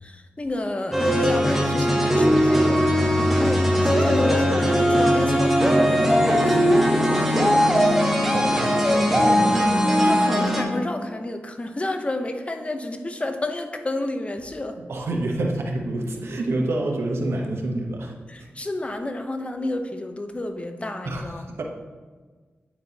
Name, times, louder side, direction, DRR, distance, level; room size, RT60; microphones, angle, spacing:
voice 1, 0.0-2.9 3.3-3.7 4.0-7.9 10.0-14.7 18.3-21.4, left 1 dB, 30° left, 6 dB, 0.7 m, -30 dB
sound 1, 0.9-10.6, equal, 5° right, 1.2 m, -19 dB
voice 2, 8.3-9.7 14.9-18.1 21.0-21.6, right 2 dB, 80° right, 1 dB, 0.9 m, -28 dB
9.2 x 4.5 x 2.8 m, 1.4 s
cardioid pair, 60°, 4 cm